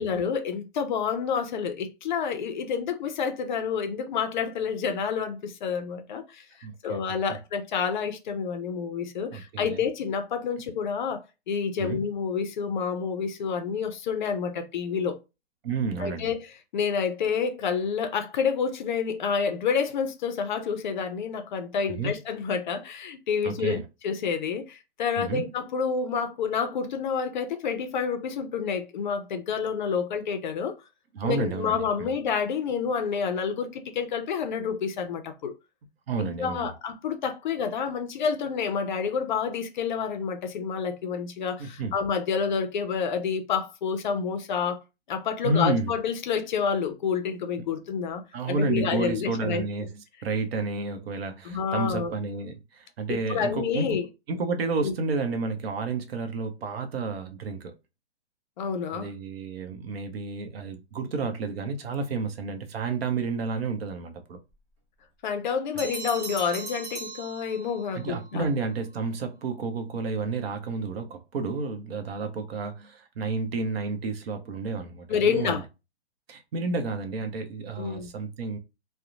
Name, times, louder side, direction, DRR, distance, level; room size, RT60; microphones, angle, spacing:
voice 1, 0.0-6.5 6.8-15.2 16.0-30.7 31.2-35.5 36.2-44.8 45.1-49.6 51.4-52.1 53.1-54.1 54.8-54.9 58.6-59.1 65.2-68.5 75.1-75.6 77.8-78.1, left 6 dB, 45° left, 0.4 m, -29 dB
voice 2, 6.6-7.0 9.3-9.9 11.8-12.0 15.6-16.3 21.9-22.1 23.4-23.8 25.2-25.4 31.1-32.1 36.1-36.7 41.6-41.9 45.4-45.9 48.3-53.9 54.3-57.7 58.9-64.4 67.9-75.6 76.3-78.6, right 4 dB, 60° right, 0.7 m, -31 dB
sound 1, 65.8-68.0, right 3 dB, 25° right, 0.8 m, -38 dB
2.7 x 2.1 x 2.5 m
hypercardioid pair, 135°, 34 cm